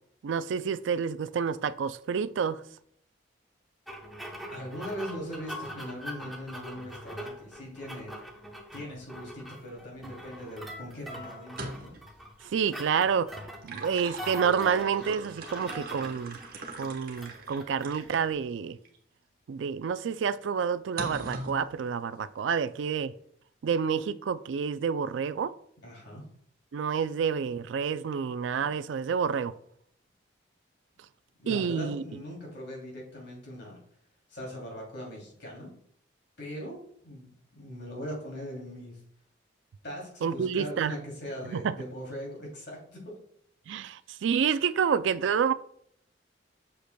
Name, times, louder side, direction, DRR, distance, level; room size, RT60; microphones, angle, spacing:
voice 1, 0.2-2.6 12.5-13.3 13.6-16.4 16.8-18.8 19.5-23.1 23.6-25.5 26.7-29.5 31.5-32.0 40.2-40.9 41.5-41.7 43.7-45.5, right 6 dB, 75° right, 0.3 m, -28 dB
sound 1, 3.9-18.4, equal, ahead, 0.8 m, -43 dB
voice 2, 4.5-8.2 8.7-11.9 25.8-26.2 31.4-33.8 34.3-35.7 36.4-39.0 39.8-43.2, equal, 60° left, 2.9 m, -40 dB
sound 2, 11.5-12.1 13.4-18.2 18.9-19.0 21.0-21.6, right 2 dB, 50° right, 1.0 m, -40 dB
7.7 x 6.6 x 2.2 m
head